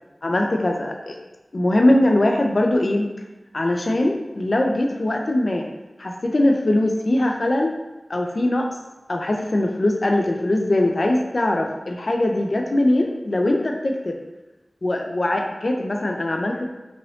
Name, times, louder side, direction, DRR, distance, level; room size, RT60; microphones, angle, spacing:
voice 1, 0.2-0.9 1.5-3.1 3.5-5.7 6.0-7.7 8.1-8.7 9.1-14.2 14.8-16.7, left 1 dB, 60° left, 2 dB, 0.3 m, -21 dB
2.8 x 2.7 x 3.1 m, 1.1 s
wide cardioid pair, 60°, 0 cm